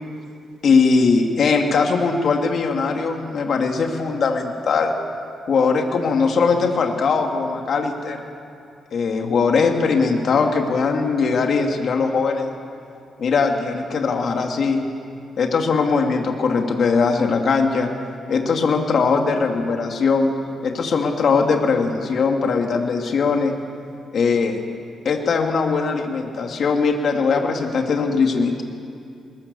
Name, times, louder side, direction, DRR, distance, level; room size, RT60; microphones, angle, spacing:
voice 1, 0.6-4.9 5.5-8.2 8.9-12.5 13.2-14.8 15.4-17.9 18.3-20.3 20.6-23.5 24.1-24.6 25.0-28.6, left 4 dB, 60° left, 3 dB, 2.4 m, -20 dB
21.5 x 20.5 x 6.9 m, 2.5 s
cardioid pair, 105°, 0 cm